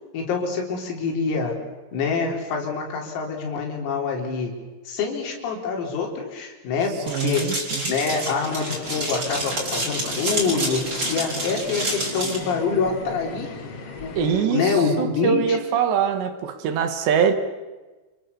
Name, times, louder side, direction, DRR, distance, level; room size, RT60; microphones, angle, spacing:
voice 1, 0.1-1.5 1.9-4.5 4.9-7.6 7.9-13.5 14.0-15.6, left 5 dB, 85° left, 6.6 m, -26 dB
sound 1, 7.1-12.4, right 1 dB, 20° right, 5.8 m, -29 dB
voice 2, 7.1-8.0 14.2-17.3, right 7 dB, 65° right, 3.7 m, -23 dB
sound 2, 8.5-14.4, left 4 dB, 45° left, 2.2 m, -37 dB
29.0 x 29.0 x 7.1 m
omnidirectional pair, 5.9 m